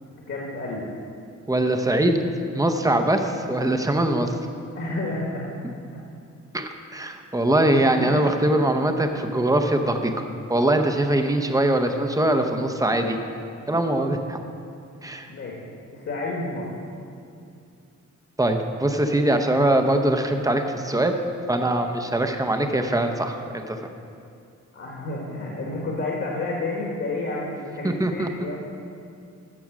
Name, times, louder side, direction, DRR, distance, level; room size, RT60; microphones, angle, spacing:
voice 1, 0.3-0.9 4.7-5.5 5.9-6.0 7.9-8.3 15.3-15.6 15.9-16.7 24.7-28.6, left 2 dB, 50° left, -3 dB, 1.6 m, -30 dB
voice 2, 1.5-2.2 2.5-4.4 6.5-13.2 13.7-14.4 15.0-15.3 18.4-21.2 21.5-23.8 27.8-28.3, right 1 dB, 10° right, 5 dB, 0.6 m, -22 dB
14.0 x 7.0 x 6.1 m, 2.5 s
wide cardioid pair, 180°, 29 cm